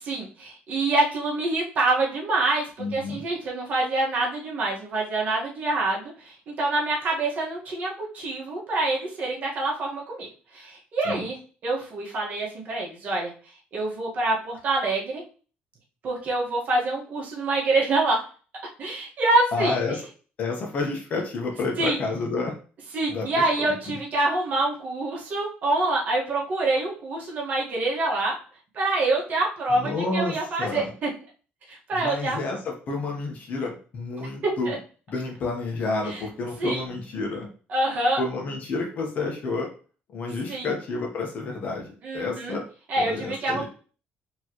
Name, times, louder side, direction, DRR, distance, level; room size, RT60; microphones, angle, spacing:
voice 1, 0.0-10.3 10.5-11.4 11.6-13.3 13.7-15.2 16.0-18.2 18.8-19.8 21.8-22.0 22.9-28.3 28.7-31.1 31.7-32.4 34.6-34.8 36.1-36.2 36.6-36.8 37.7-38.2 40.5-40.7 42.0-42.6 42.9-43.6, right 2 dB, 45° right, -3 dB, 1.6 m, -26 dB
voice 2, 2.8-3.2 11.0-11.2 19.5-20.0 20.4-22.5 23.1-23.3 23.6-24.0 29.7-30.9 31.9-34.7 35.1-37.5 38.2-39.7 40.1-42.6 43.0-43.6, left 3 dB, 45° left, 1 dB, 1.1 m, -30 dB
4.5 x 3.1 x 3.0 m, 0.39 s
cardioid pair, 150°, 4 cm